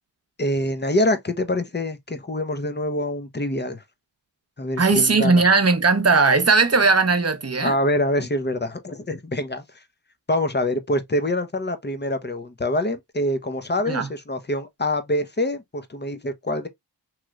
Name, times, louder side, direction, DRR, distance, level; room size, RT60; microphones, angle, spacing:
voice 1, 0.4-3.8 4.6-5.5 7.6-9.8 10.3-16.7, left 1 dB, 25° left, 0.7 m, -25 dB
voice 2, 4.8-7.7 13.9-14.1, right 4 dB, 35° right, 0.8 m, -18 dB
3.1 x 2.9 x 2.3 m
cardioid pair, 40°, 43 cm